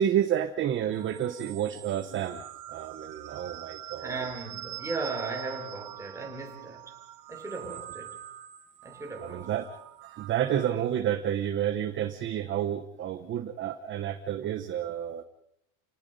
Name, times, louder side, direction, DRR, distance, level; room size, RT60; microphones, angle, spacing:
voice 1, 0.0-2.4 2.7-4.3 9.2-9.7 10.0-15.2, right 10 dB, 25° right, 0.9 m, -30 dB
sound 1, 0.9-10.7, right 13 dB, 45° right, 1.9 m, -44 dB
voice 2, 4.0-6.9 7.3-8.2 8.8-9.5, right 3 dB, 5° right, 3.5 m, -37 dB
29.5 x 19.0 x 5.3 m
supercardioid pair, 155°, 44 cm